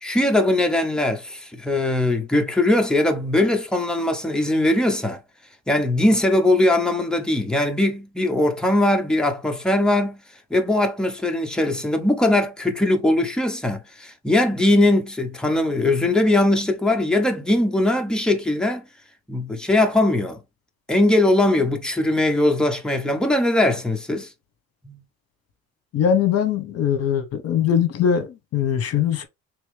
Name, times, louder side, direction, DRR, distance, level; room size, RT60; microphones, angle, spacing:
voice 1, 0.0-5.2 5.7-10.2 10.5-18.8 19.3-20.4 20.9-24.3 24.8-25.0, left 1 dB, 5° left, 0.8 m, -20 dB
voice 2, 25.9-29.2, left 8 dB, 55° left, 1.1 m, -21 dB
3.5 x 3.0 x 3.3 m
cardioid pair, 120°, 29 cm